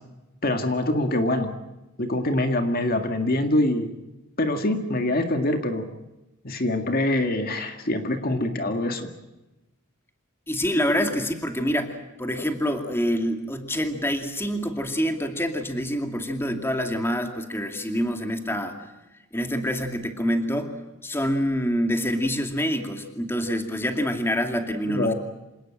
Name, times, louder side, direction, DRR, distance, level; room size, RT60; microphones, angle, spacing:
voice 1, 0.4-1.5 2.0-3.9 4.4-5.9 6.4-9.1 24.9-25.1, left 1 dB, 45° left, 6 dB, 2.0 m, -24 dB
voice 2, 10.5-18.8 19.3-20.8 21.0-25.1, equal, 10° left, 5 dB, 2.5 m, -26 dB
27.0 x 19.0 x 8.9 m, 1.0 s
head